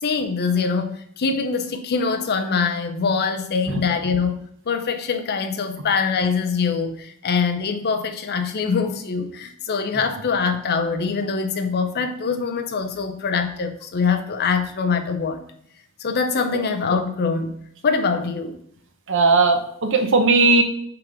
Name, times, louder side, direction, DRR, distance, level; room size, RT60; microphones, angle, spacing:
voice 1, 0.0-15.4 16.0-17.6 17.8-18.6, left 5 dB, 50° left, 7 dB, 0.5 m, -23 dB
voice 2, 19.1-20.6, right 3 dB, 60° right, 6 dB, 0.9 m, -17 dB
5.8 x 3.6 x 4.8 m, 0.69 s
head